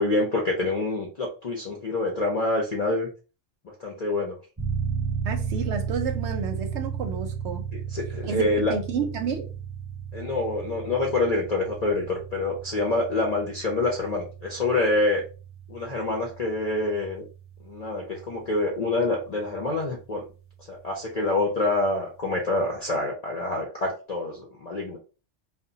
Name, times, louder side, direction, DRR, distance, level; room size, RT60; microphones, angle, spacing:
voice 1, 0.0-3.1 3.8-4.3 7.9-8.7 10.1-15.2 15.7-17.2 17.6-20.2 20.7-25.0, left 2 dB, 55° left, 0.4 m, -26 dB
sound 1, 4.6-19.0, right 7 dB, 15° right, 0.7 m, -34 dB
voice 2, 5.2-7.7 8.2-9.5, right 5 dB, 70° right, 0.8 m, -30 dB
2.1 x 2.1 x 3.7 m
omnidirectional pair, 1.3 m